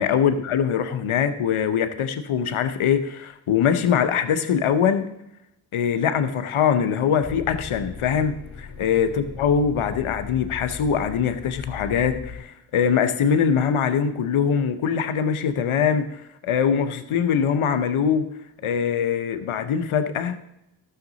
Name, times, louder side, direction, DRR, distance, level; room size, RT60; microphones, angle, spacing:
voice 1, 0.0-5.1 5.7-18.2 18.6-20.4, left 7 dB, 80° left, 8 dB, 0.9 m, -22 dB
sound 1, 7.2-12.4, left 5 dB, 35° left, 2.9 m, -38 dB
13.0 x 6.7 x 4.0 m, 0.84 s
cardioid pair, 55°, 49 cm